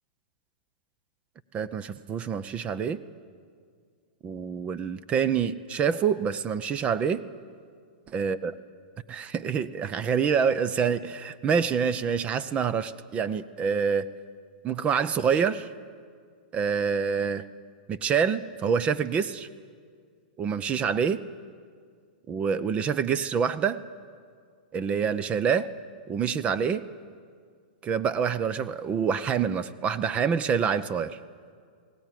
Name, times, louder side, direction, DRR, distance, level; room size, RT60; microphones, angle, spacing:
voice 1, 1.5-3.0 4.2-7.2 8.1-8.5 9.1-14.1 14.6-15.7 16.5-17.4 17.9-19.5 20.4-21.2 22.3-23.8 24.7-25.7 26.1-26.8 27.8-31.2, right 6 dB, 25° right, 16 dB, 0.7 m, -26 dB
20.5 x 17.5 x 9.3 m, 2.1 s
hypercardioid pair, 135°, 5 cm